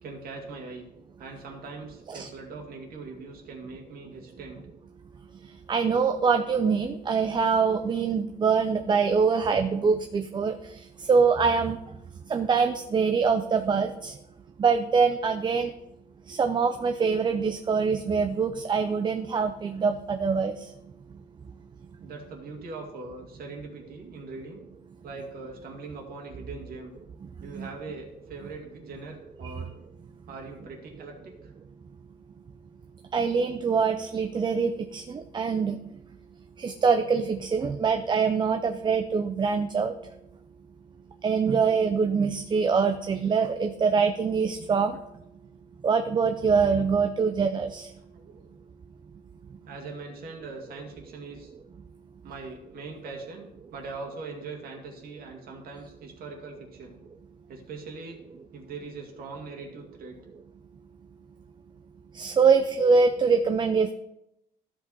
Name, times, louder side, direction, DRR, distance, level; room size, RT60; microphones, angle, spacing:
voice 1, 0.0-0.9 1.2-4.6 22.0-24.6 25.0-26.9 27.4-29.7 30.3-31.5 48.1-48.5 49.7-51.5 52.2-53.4 53.7-57.0 57.5-58.2 58.5-60.2, right 3 dB, 60° right, 1 dB, 2.1 m, -41 dB
voice 2, 5.7-10.7 11.0-11.8 12.3-14.1 14.6-15.7 16.3-20.7 27.5-27.7 33.1-35.8 36.6-39.9 41.2-45.0 45.8-47.9 62.1-63.9, right 5 dB, 25° right, 8 dB, 0.5 m, -24 dB
13.5 x 5.2 x 4.1 m, 0.86 s
cardioid pair, 110°, 17 cm